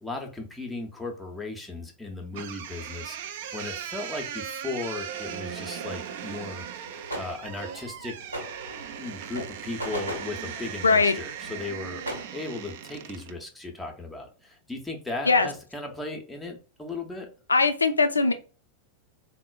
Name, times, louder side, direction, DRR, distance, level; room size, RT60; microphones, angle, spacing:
voice 1, 0.0-6.6 7.1-8.2 9.0-12.0 12.3-17.3, left 3 dB, 5° left, 1 dB, 0.6 m, -36 dB
sound 1, 2.3-13.4, right 9 dB, 55° right, 0.3 m, -38 dB
sound 2, 6.8-12.3, right 1 dB, 85° right, 1.0 m, -39 dB
voice 2, 10.8-11.2 15.3-15.5 17.5-18.3, left 4 dB, 75° left, 9 dB, 0.3 m, -20 dB
3.6 x 2.0 x 2.3 m, 0.36 s
figure-of-eight pair, 90°, 0 cm